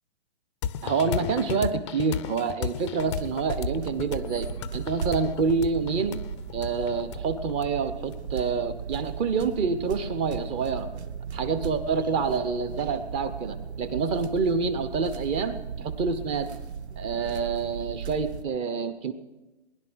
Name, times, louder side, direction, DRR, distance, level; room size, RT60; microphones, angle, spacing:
sound 1, 0.6-8.2, left 9 dB, 25° left, 0.5 m, -34 dB
voice 1, 0.8-4.5 4.7-6.2 6.5-10.9 11.3-16.5 17.0-19.1, right 5 dB, 15° right, 11 dB, 0.8 m, -27 dB
sound 2, 3.0-18.4, right 6 dB, 75° right, 1.2 m, -37 dB
20.0 x 11.0 x 6.2 m, 1.1 s
hypercardioid pair, 145°, 33 cm